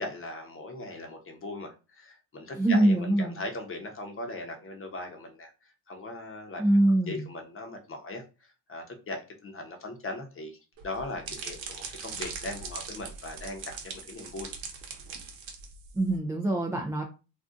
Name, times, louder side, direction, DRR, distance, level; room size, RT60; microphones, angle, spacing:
voice 1, 0.0-5.5 5.9-6.6 7.1-8.2 8.7-10.6 10.8-14.5, left 2 dB, 30° left, 3 dB, 0.8 m, -39 dB
voice 2, 2.6-3.4 6.6-7.2 15.9-17.0, right 1 dB, 5° right, 0 dB, 0.3 m, -24 dB
sound 1, 10.8-16.1, right 5 dB, 75° right, 1.0 m, -41 dB
2.6 x 2.3 x 3.6 m, 0.31 s
cardioid pair, 120°, 45 cm